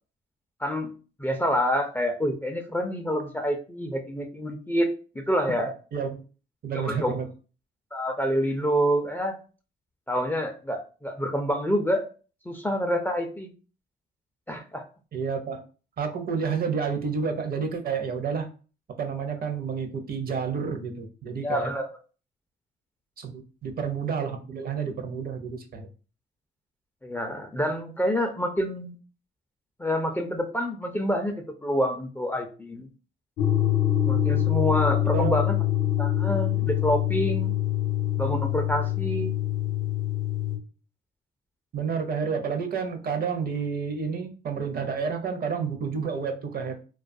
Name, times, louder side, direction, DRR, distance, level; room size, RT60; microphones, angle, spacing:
voice 1, 0.6-0.9 1.2-4.9 5.3-5.7 6.7-7.2 7.9-9.4 10.1-12.1 12.5-13.5 14.5-14.9 21.4-21.9 27.0-28.9 29.8-31.3 31.6-32.9 34.0-35.6 36.0-37.5 38.2-39.3, equal, 10° left, 4 dB, 0.3 m, -27 dB
voice 2, 6.6-7.3 15.1-15.6 16.0-18.5 19.0-21.7 23.2-25.9 35.0-35.4 41.7-46.7, right 6 dB, 50° right, 6 dB, 0.6 m, -30 dB
sound 1, 33.4-40.6, left 12 dB, 75° left, 0.6 m, -25 dB
2.3 x 2.2 x 2.5 m, 0.36 s
cardioid pair, 90°, 20 cm